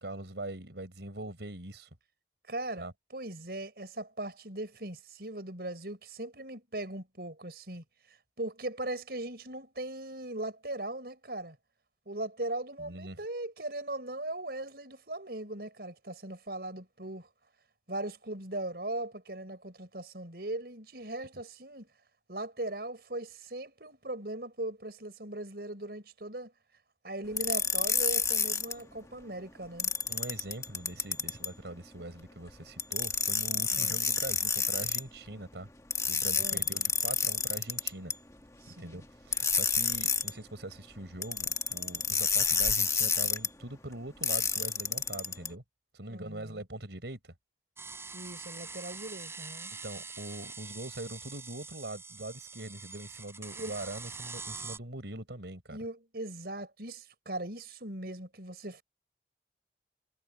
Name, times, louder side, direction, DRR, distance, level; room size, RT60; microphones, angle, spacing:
voice 1, 0.0-1.9 2.8-2.9 12.8-13.2 30.1-35.7 36.0-38.1 38.8-45.6 45.9-47.3 49.8-55.8, right 1 dB, 80° right, 4.4 m, -42 dB
voice 2, 2.5-2.9 3.1-7.8 8.4-11.6 12.1-17.3 17.9-21.9 22.3-26.5 27.0-29.9 33.7-34.0 36.3-36.6 38.6-39.0 46.1-46.6 48.1-49.7 53.6-53.7 55.7-58.8, right 1 dB, 60° right, 6.2 m, -39 dB
sound 1, 27.4-28.7 29.8-31.5 32.8-35.0 35.9-38.1 39.3-40.3 41.2-43.5 44.2-45.5, left 5 dB, 20° left, 1.6 m, -29 dB
sound 2, 47.8-54.8, right 4 dB, 15° right, 4.5 m, -44 dB
head